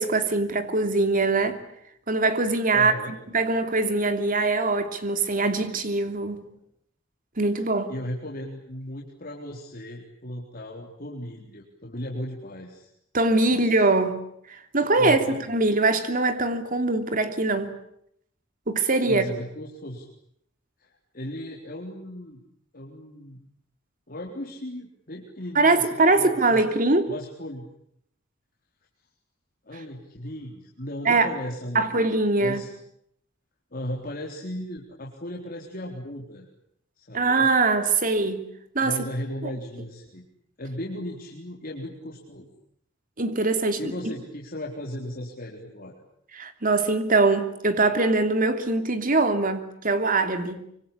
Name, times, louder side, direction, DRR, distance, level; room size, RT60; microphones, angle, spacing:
voice 1, 0.0-1.6 2.1-2.9 3.3-6.5 7.4-7.9 13.1-14.2 14.5-17.7 18.7-19.2 25.5-27.1 31.0-31.3 31.7-32.6 37.1-38.4 38.7-39.0 43.2-43.9 46.3-50.6, right 3 dB, 45° right, 3.0 m, -22 dB
voice 2, 2.7-3.1 7.6-12.9 13.5-13.8 15.0-15.4 19.0-20.1 20.8-22.4 22.7-23.4 24.1-26.6 27.1-27.7 29.7-32.0 32.4-32.7 33.7-36.5 37.0-37.5 38.8-40.2 40.6-42.5 43.8-46.0, left 1 dB, 45° left, 3.9 m, -36 dB
26.0 x 24.5 x 8.7 m
head